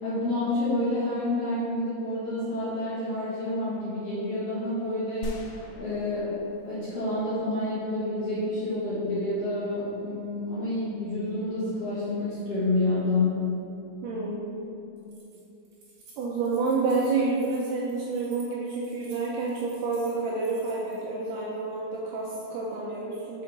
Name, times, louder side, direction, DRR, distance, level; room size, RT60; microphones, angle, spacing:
voice 1, 0.0-5.3 5.7-6.3 6.6-13.5, left 2 dB, 60° left, -12 dB, 1.6 m, -28 dB
sound 1, 5.2-7.5, right 1 dB, 90° left, 2.6 m, -41 dB
voice 2, 14.0-14.7 16.2-23.4, right 3 dB, 80° right, -5 dB, 2.0 m, -29 dB
Keys jangling, 15.0-21.0, right 3 dB, 60° right, 2.3 m, -55 dB
5.5 x 5.1 x 4.0 m, 2.9 s
omnidirectional pair, 4.4 m